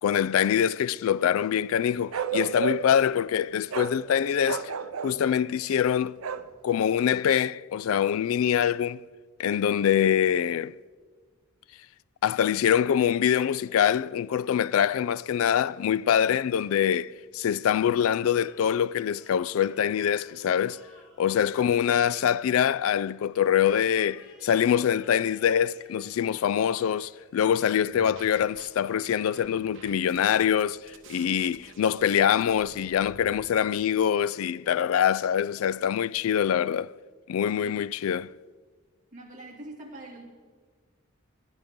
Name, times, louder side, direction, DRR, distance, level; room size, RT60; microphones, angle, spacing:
voice 1, 0.0-4.7 5.0-6.2 6.6-9.0 9.4-10.7 12.2-20.8 21.2-36.9 37.3-38.3, left 9 dB, 75° left, 0.3 m, -24 dB
Bark, 2.1-3.0 3.7-4.0 4.4-5.2 6.2-6.5, right 5 dB, 85° right, 0.6 m, -31 dB
sound 1, 18.2-23.0 23.7-28.1, right 1 dB, 5° right, 4.5 m, -58 dB
sound 2, 27.8-28.7 29.0-33.4, right 4 dB, 65° right, 1.2 m, -50 dB
voice 2, 39.1-40.2, right 2 dB, 40° right, 2.5 m, -44 dB
18.5 x 11.5 x 3.7 m
head